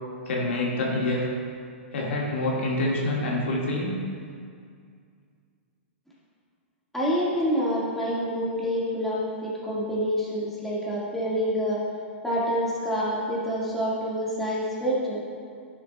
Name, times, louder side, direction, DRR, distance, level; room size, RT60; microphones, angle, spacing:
voice 1, 0.3-1.3 1.9-4.0, left 2 dB, 75° left, -3 dB, 1.8 m, -26 dB
voice 2, 6.9-11.8 12.2-15.2, equal, 5° left, -8 dB, 1.7 m, -27 dB
11.0 x 6.9 x 2.2 m, 2.2 s
hypercardioid pair, 140°, 7 cm